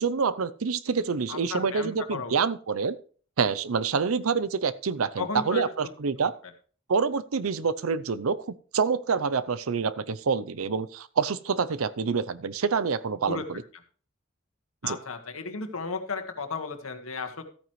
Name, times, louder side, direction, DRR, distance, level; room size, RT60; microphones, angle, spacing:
voice 1, 0.0-3.0 3.4-6.3 6.9-13.6 14.8-15.0, right 5 dB, 85° right, 17 dB, 0.6 m, -27 dB
voice 2, 1.3-2.3 5.2-5.9 13.3-13.4 14.8-17.4, left 4 dB, 85° left, 6 dB, 1.7 m, -34 dB
14.0 x 9.1 x 3.2 m, 0.42 s
head